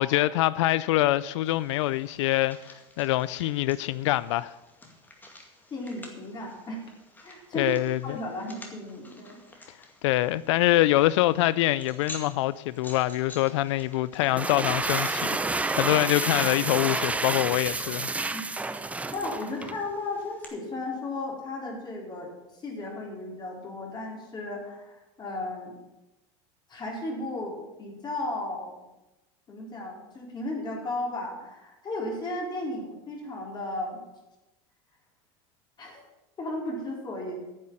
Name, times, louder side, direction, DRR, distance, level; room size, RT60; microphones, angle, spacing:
voice 1, 0.0-4.5 7.6-8.2 10.0-18.1, left 16 dB, 90° left, 0.4 m, -25 dB
sound 1, 1.4-20.4, left 2 dB, 10° left, 2.2 m, -50 dB
voice 2, 5.7-6.8 7.2-7.7 8.0-9.7 18.3-18.4 19.1-22.3 22.6-25.8 26.7-28.7 29.5-34.0 35.8-36.0 36.4-37.4, left 2 dB, 30° left, 4.1 m, -35 dB
sound 2, 14.2-19.8, right 3 dB, 10° right, 0.5 m, -29 dB
9.9 x 7.5 x 8.8 m
supercardioid pair, 120°, 15 cm